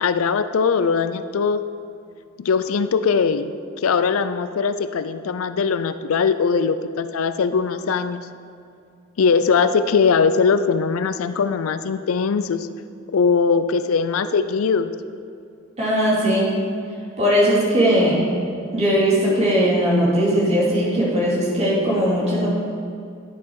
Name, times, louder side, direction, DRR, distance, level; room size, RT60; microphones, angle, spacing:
voice 1, 0.0-1.6 2.4-8.3 9.2-12.7 13.1-14.9, left 5 dB, 90° left, 12 dB, 0.4 m, -20 dB
voice 2, 15.8-16.5 17.2-18.2 18.7-22.5, equal, 30° right, -7 dB, 2.6 m, -19 dB
10.5 x 7.0 x 4.7 m, 2.4 s
head